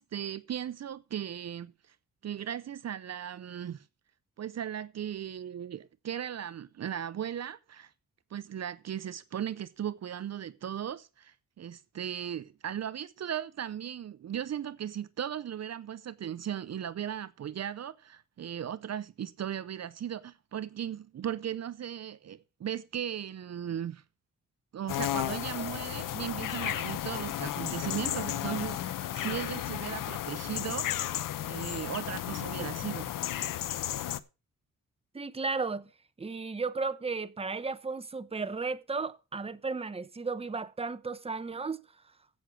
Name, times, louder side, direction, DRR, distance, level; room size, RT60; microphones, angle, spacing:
voice 1, 0.0-1.9 2.2-3.9 4.4-7.9 8.3-24.0 24.7-30.9 31.4-33.2, right 9 dB, 55° right, 0.7 m, -37 dB
sound 1, 24.9-34.2, left 12 dB, 75° left, 0.8 m, -34 dB
voice 2, 35.1-35.9 36.2-41.8, right 4 dB, 20° right, 0.9 m, -34 dB
15.5 x 6.4 x 4.7 m
cardioid pair, 90°, 32 cm